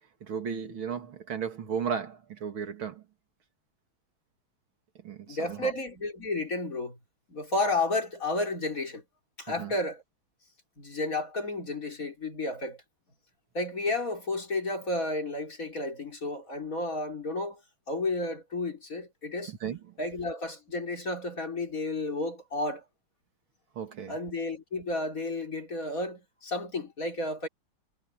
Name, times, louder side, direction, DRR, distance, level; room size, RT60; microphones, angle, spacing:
voice 1, 0.2-3.0 5.0-5.7 9.5-9.7 19.5-19.9 23.7-24.1, right 7 dB, 80° right, 3.1 m, -35 dB
voice 2, 5.3-7.0 7.3-9.0 9.4-10.0 10.8-12.8 13.5-17.6 17.9-19.5 20.0-22.8 24.1-27.5, left 2 dB, 40° left, 4.4 m, -32 dB
omnidirectional pair, 2.3 m